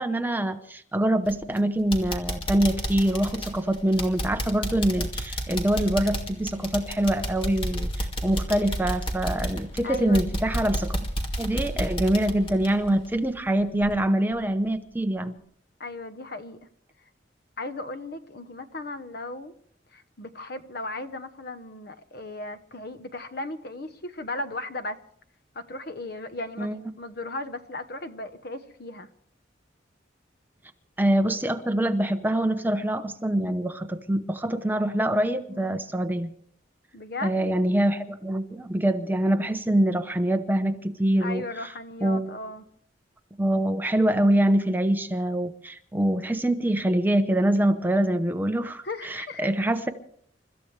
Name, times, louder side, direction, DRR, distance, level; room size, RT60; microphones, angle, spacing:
voice 1, 0.0-11.0 11.4-15.4 26.6-26.7 31.0-36.3 37.2-41.4 42.0-42.3 43.4-49.9, right 1 dB, 10° right, 0.8 m, -24 dB
sound 1, 1.2-1.6 1.9-13.5 13.8-13.9 14.4-14.5, equal, 30° left, 2.2 m, -31 dB
voice 2, 9.8-10.3 15.8-16.7 17.6-19.5 19.9-25.0 25.5-29.1 35.5-35.8 36.9-37.5 41.2-42.6 48.8-49.5, left 2 dB, 55° left, 1.1 m, -36 dB
29.0 x 14.0 x 3.3 m
head